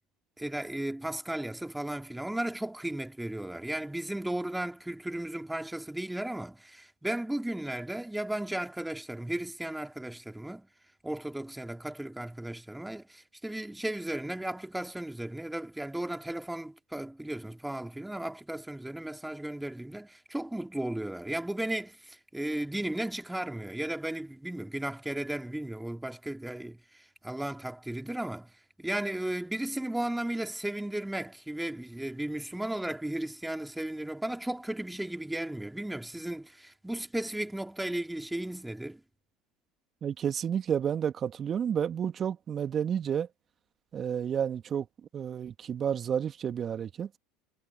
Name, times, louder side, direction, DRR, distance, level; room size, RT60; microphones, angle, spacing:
voice 1, 0.4-10.7 11.0-28.5 28.8-39.0, right 1 dB, 5° right, 2.7 m, -35 dB
voice 2, 40.0-43.3 43.9-44.9 45.1-47.1, right 8 dB, 40° right, 2.2 m, -30 dB
hypercardioid pair, 70°, 0 cm